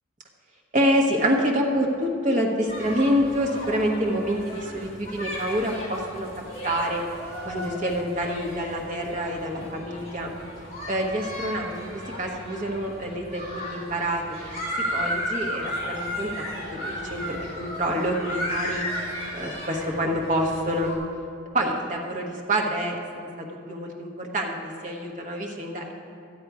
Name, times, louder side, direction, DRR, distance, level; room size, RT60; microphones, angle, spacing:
voice 1, 0.7-6.3 6.6-7.0 7.4-10.3 10.9-14.6 14.9-16.3 16.7-18.9 19.3-20.9 21.5-25.9, equal, 35° right, 0 dB, 1.1 m, -27 dB
sound 1, 2.7-21.0, equal, 30° left, 2.6 m, -35 dB
12.0 x 9.2 x 4.8 m, 2.5 s
head